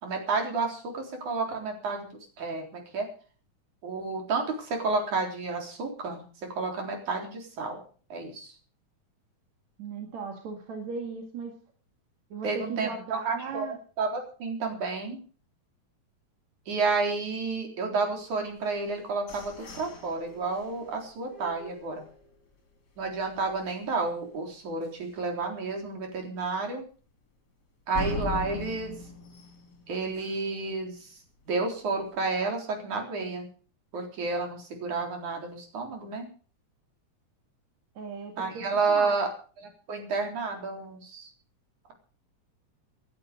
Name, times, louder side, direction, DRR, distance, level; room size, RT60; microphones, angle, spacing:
voice 1, 0.0-2.1 2.4-3.1 3.8-6.2 6.5-7.8 8.1-8.5 12.4-13.7 14.0-15.2 16.7-22.1 23.0-26.8 27.9-28.9 29.9-31.2 31.5-33.5 33.9-36.3 38.4-39.3 39.6-41.3, right 4 dB, 80° right, 3 dB, 5.3 m, -31 dB
voice 2, 9.8-11.6 12.3-13.8 37.9-39.1, right 5 dB, 65° right, 3 dB, 3.4 m, -37 dB
sound 1, 18.7-22.5 23.0-23.1 23.5-23.9 24.3-24.4 24.8-24.9 27.9-30.6, left 2 dB, 35° left, 3.3 m, -39 dB
19.5 x 11.5 x 5.1 m, 0.40 s
omnidirectional pair, 3.4 m